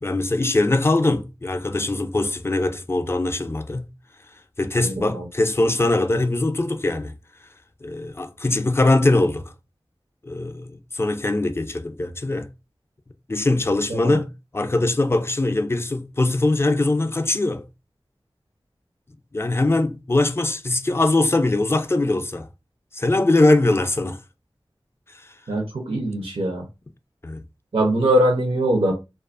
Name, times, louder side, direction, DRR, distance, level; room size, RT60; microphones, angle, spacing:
voice 1, 0.0-3.9 4.6-7.1 7.8-9.5 10.2-12.5 13.3-17.6 19.3-22.5 22.9-24.2 27.2-27.4, left 2 dB, 25° left, 0.4 m, -21 dB
voice 2, 4.8-5.3 13.9-14.2 25.5-26.6 27.7-28.9, right 1 dB, 80° right, 0.6 m, -22 dB
2.6 x 2.3 x 2.4 m
wide cardioid pair, 50°, 9 cm